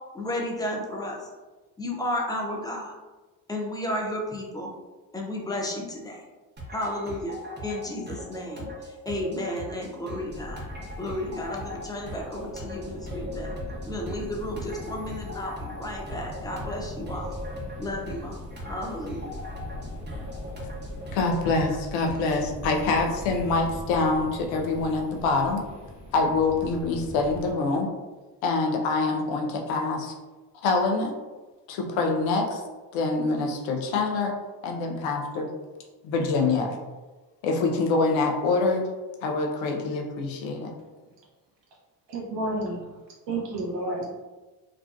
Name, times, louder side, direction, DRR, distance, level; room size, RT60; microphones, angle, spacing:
voice 1, 0.1-1.2 1.8-2.9 3.5-4.7 5.1-6.2 6.7-7.3 7.6-8.7 9.1-10.7 11.0-13.5 13.9-17.3 17.8-19.3, left 1 dB, 10° left, -1 dB, 0.3 m, -32 dB
sound 1, 6.6-22.4, equal, 20° right, 0.7 m, -40 dB
sound 2, 10.3-27.5, left 1 dB, 30° left, 0.9 m, -40 dB
voice 2, 21.1-25.6 26.1-27.9 28.4-30.1 30.6-31.1 31.7-32.6 32.9-34.3 34.6-35.5 36.0-36.7 37.4-38.9 39.2-40.7, left 3 dB, 65° left, 2 dB, 0.6 m, -25 dB
voice 3, 42.1-42.9 43.3-44.1, right 2 dB, 55° right, -3 dB, 0.8 m, -30 dB
2.4 x 2.2 x 2.3 m, 1.2 s
hypercardioid pair, 55°, 50 cm